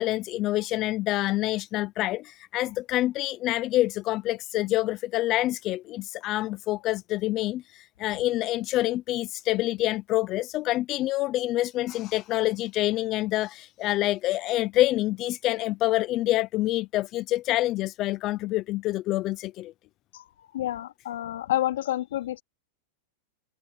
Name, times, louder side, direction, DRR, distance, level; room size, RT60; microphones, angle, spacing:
voice 1, 0.0-19.7, left 16 dB, 30° left, 0.5 m, -27 dB
voice 2, 20.1-22.4, left 13 dB, 85° left, 3.4 m, -29 dB
supercardioid pair, 160°, 0 cm